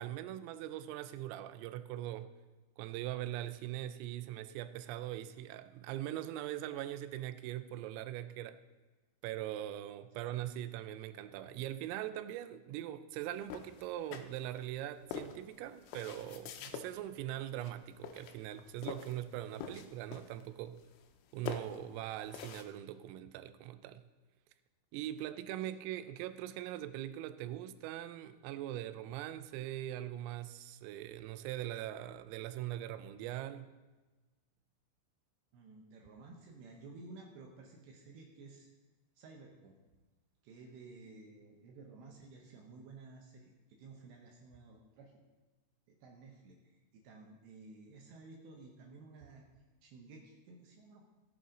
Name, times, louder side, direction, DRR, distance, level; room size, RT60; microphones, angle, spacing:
voice 1, 0.0-2.3 2.8-8.6 9.2-20.8 21.3-24.0 24.9-33.7, right 13 dB, 90° right, 3.3 m, -41 dB
sound 1, 13.5-14.7 15.1-16.9 17.5-17.8 18.0-19.2 19.5-20.5 20.8-21.2 21.5-22.6, left 7 dB, 90° left, 3.3 m, -45 dB
voice 2, 35.5-38.7 39.2-39.8 40.4-45.1 45.9-49.5 49.8-51.0, right 3 dB, 70° right, 2.9 m, -54 dB
18.0 x 7.7 x 3.8 m
omnidirectional pair, 5.8 m